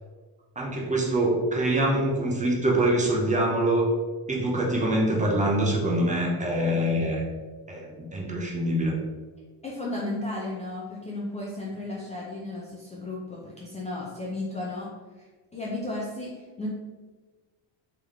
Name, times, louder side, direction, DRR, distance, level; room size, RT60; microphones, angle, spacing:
voice 1, 0.6-3.9 4.3-7.2 7.7-9.0, right 1 dB, 15° right, -2 dB, 0.7 m, -24 dB
voice 2, 9.6-14.9 15.5-16.7, left 2 dB, 15° left, -5 dB, 0.4 m, -34 dB
3.6 x 3.0 x 3.5 m, 1.3 s
cardioid pair, 125°, 46 cm